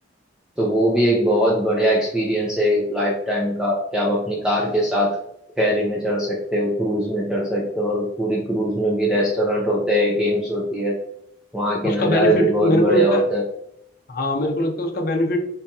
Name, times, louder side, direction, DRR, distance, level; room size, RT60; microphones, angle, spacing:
voice 1, 0.6-5.2 5.6-11.0 11.5-13.4, equal, 5° right, -5 dB, 0.4 m, -21 dB
voice 2, 11.8-13.2 14.1-15.4, left 1 dB, 50° left, 2 dB, 0.5 m, -21 dB
3.8 x 2.8 x 2.3 m, 0.76 s
head